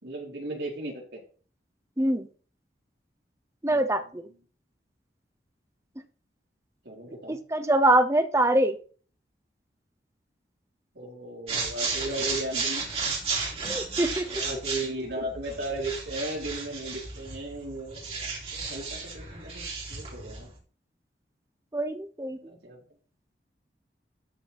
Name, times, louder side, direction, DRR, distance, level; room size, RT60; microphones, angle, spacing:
voice 1, 0.0-1.2 3.7-3.9 6.8-7.4 10.9-14.0 14.3-20.5 22.4-22.8, right 1 dB, 80° right, -2 dB, 4.0 m, -36 dB
voice 2, 2.0-2.3 3.6-4.3 7.3-8.8 13.7-14.3 21.7-22.4, right 1 dB, 15° right, 10 dB, 0.7 m, -24 dB
sound 1, 11.5-20.5, right 4 dB, 35° right, 3.4 m, -33 dB
12.5 x 4.7 x 4.3 m, 0.40 s
head